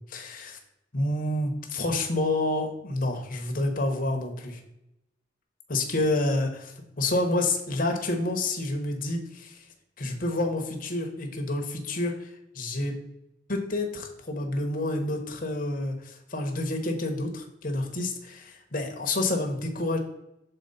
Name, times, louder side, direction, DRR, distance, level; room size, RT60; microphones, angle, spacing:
voice 1, 0.1-0.6 0.9-4.6 5.7-9.6 10.0-12.9 13.5-20.0, left 2 dB, 45° left, 3 dB, 1.0 m, -29 dB
6.7 x 4.3 x 4.1 m, 0.87 s
head